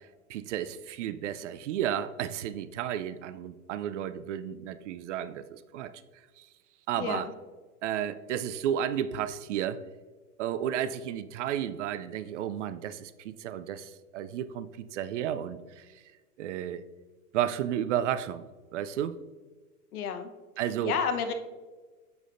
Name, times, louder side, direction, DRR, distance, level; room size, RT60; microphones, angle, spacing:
voice 1, 0.3-5.9 6.4-6.5 6.9-7.3 7.8-9.8 10.4-15.8 16.4-16.8 17.3-19.2 20.6-20.9, right 10 dB, 50° right, 13 dB, 0.5 m, -32 dB
voice 2, 7.0-7.3 19.9-20.3 20.8-21.3, left 6 dB, 65° left, 7 dB, 1.0 m, -30 dB
8.4 x 6.1 x 2.6 m, 1.3 s
hypercardioid pair, 110°, 47 cm